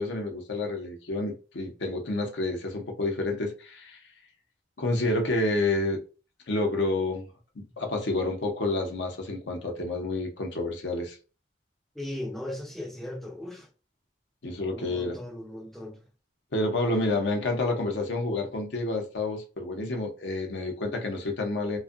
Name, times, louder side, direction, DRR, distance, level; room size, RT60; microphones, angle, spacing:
voice 1, 0.0-4.0 4.8-6.0 6.5-7.3 7.6-11.2 14.4-15.2 16.5-21.8, left 2 dB, 70° left, 0.7 m, -29 dB
voice 2, 12.0-13.7 14.7-16.0, left 1 dB, ahead, 0.3 m, -37 dB
2.5 x 2.3 x 2.4 m
head